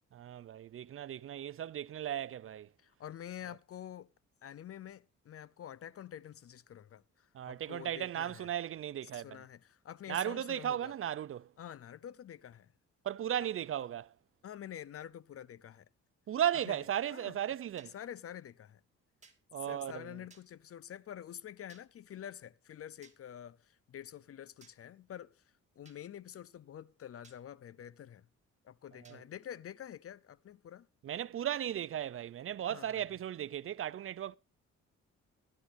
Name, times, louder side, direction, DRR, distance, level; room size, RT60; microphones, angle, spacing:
voice 1, 0.1-2.7 7.3-9.4 10.1-11.5 13.0-14.1 16.3-17.9 19.5-20.2 29.0-29.2 31.0-34.4, right 10 dB, 45° right, 0.5 m, -36 dB
voice 2, 2.8-4.1 4.4-8.5 9.1-10.9 11.6-12.7 14.4-15.9 16.6-16.8 17.1-17.4 17.9-18.8 19.6-25.4 25.8-28.3 28.6-30.9 32.7-33.0, left 10 dB, 50° left, 0.7 m, -47 dB
sound 1, 17.8-17.9 19.2-19.4 20.3-20.5 21.7-21.9 23.0-23.2 24.6-24.8 25.8-26.0 27.2-27.4 29.0-29.2, right 4 dB, 25° right, 2.2 m, -60 dB
17.5 x 11.0 x 2.6 m
cardioid pair, 90°, 30 cm